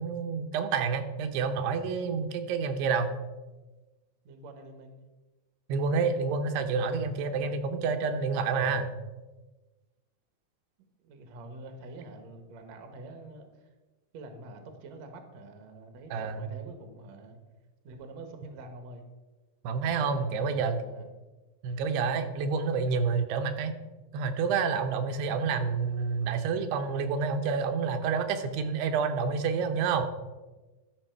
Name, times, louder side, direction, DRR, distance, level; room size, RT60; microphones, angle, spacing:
voice 1, 0.0-3.1 5.7-9.0 16.1-16.5 19.6-20.8 21.6-23.8 24.1-30.1, right 5 dB, 90° right, 7 dB, 2.9 m, -28 dB
voice 2, 4.2-5.0 11.0-13.7 14.1-17.4 17.8-19.0 20.3-21.1 22.8-23.1, right 2 dB, 65° right, 6 dB, 1.8 m, -46 dB
12.0 x 6.1 x 4.5 m, 1.2 s
omnidirectional pair, 4.6 m